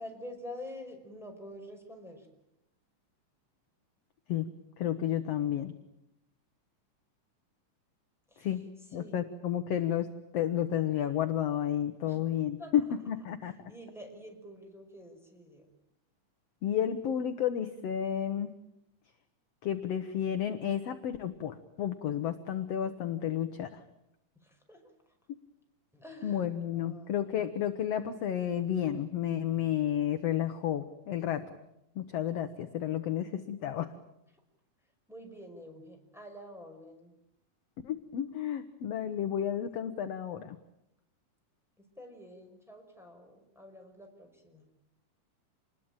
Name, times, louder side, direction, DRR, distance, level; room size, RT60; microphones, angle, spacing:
voice 1, 0.0-2.3 8.3-8.5 8.9-9.3 12.0-12.3 12.6-12.9 13.4-15.7 24.4-25.1 25.9-26.5 26.7-27.3 35.1-37.2 41.8-44.7, left 1 dB, ahead, 1 dB, 5.5 m, -48 dB
voice 2, 4.8-5.7 8.4-8.6 8.9-13.7 16.6-18.5 19.6-23.8 26.2-31.5 32.0-33.9 37.8-40.6, left 10 dB, 60° left, 9 dB, 1.9 m, -31 dB
28.0 x 21.0 x 9.0 m, 0.83 s
omnidirectional pair, 3.8 m